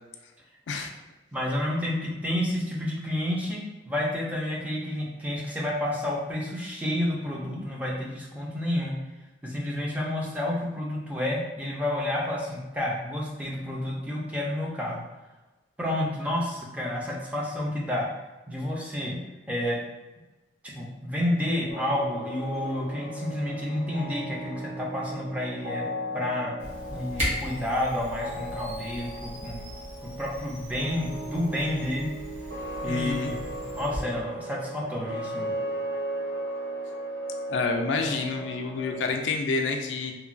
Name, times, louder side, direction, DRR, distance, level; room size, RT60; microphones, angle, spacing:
voice 1, 1.3-9.0 9.4-15.0 15.8-18.1 18.5-19.2 19.5-19.8 20.6-25.8 26.1-26.5 26.9-29.6 30.0-32.1 32.8-35.5, left 1 dB, 10° right, -4 dB, 0.5 m, -30 dB
sound 1, 21.7-39.1, right 1 dB, 60° right, 0.5 m, -36 dB
Camera, 26.6-34.0, equal, 35° right, 1.0 m, -37 dB
voice 2, 32.9-33.3 37.5-40.1, left 4 dB, 75° left, 4 dB, 0.3 m, -28 dB
3.0 x 2.2 x 2.5 m, 1.1 s
head